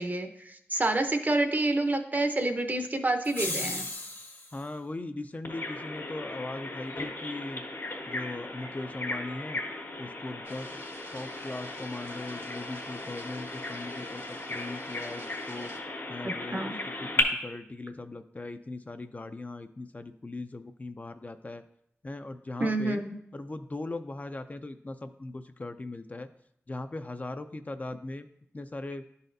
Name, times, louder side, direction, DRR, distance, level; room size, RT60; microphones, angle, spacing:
voice 1, 0.0-3.9 16.5-16.8 22.6-23.2, right 2 dB, 40° right, 7 dB, 0.6 m, -28 dB
sound 1, 3.2-4.6, left 2 dB, 55° left, 1.0 m, -35 dB
voice 2, 4.5-7.6 8.1-9.6 10.0-10.8 11.1-15.7 16.1-16.7 17.0-21.6 22.0-23.0 23.3-26.3 26.7-28.3 28.5-29.0, left 2 dB, 35° left, 8 dB, 0.4 m, -39 dB
Bird vocalization bird call bird song, 5.4-17.2, left 2 dB, 75° left, 1.4 m, -36 dB
sound 2, 10.4-15.8, right 2 dB, 60° right, 1.1 m, -50 dB
11.0 x 4.1 x 2.6 m, 0.73 s
wide cardioid pair, 80°, 5 cm